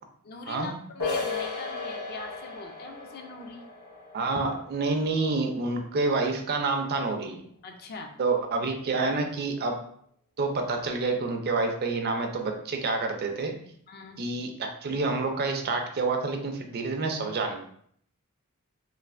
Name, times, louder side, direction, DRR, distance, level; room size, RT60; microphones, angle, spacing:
voice 1, 0.2-3.7 7.6-8.2 13.9-14.2, left 4 dB, 45° left, 4 dB, 0.4 m, -42 dB
sound 1, 1.0-6.5, left 3 dB, 80° left, 1.0 m, -36 dB
voice 2, 4.1-7.4 8.2-9.8 10.4-13.6 14.2-17.6, right 3 dB, 45° right, 4 dB, 0.4 m, -28 dB
3.2 x 2.3 x 2.4 m, 0.64 s
head